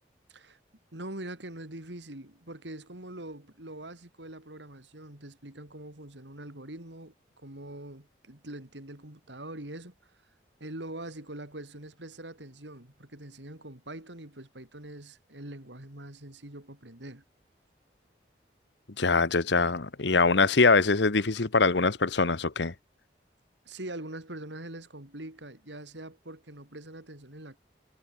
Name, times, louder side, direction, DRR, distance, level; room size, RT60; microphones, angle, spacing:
voice 1, 0.9-9.9 10.6-17.2 23.7-27.6, right 1 dB, 85° right, 4.0 m, -43 dB
voice 2, 19.0-22.7, left 4 dB, 80° left, 1.2 m, -23 dB
head